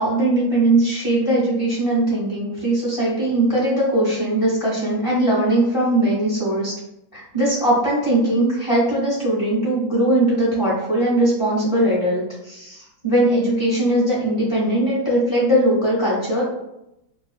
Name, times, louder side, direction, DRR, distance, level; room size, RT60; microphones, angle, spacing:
voice 1, 0.0-6.7 7.1-16.4, right 1 dB, 20° left, -7 dB, 1.0 m, -20 dB
3.1 x 2.3 x 2.2 m, 0.86 s
omnidirectional pair, 2.1 m